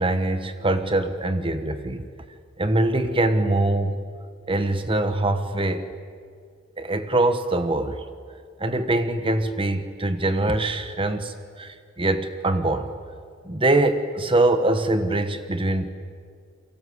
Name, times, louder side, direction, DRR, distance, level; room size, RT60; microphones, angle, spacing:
voice 1, 0.0-2.0 2.6-4.1 4.5-5.9 6.8-8.0 8.6-12.9 13.4-15.9, right 2 dB, 25° right, 9 dB, 1.3 m, -23 dB
29.5 x 23.5 x 8.1 m, 2.1 s
head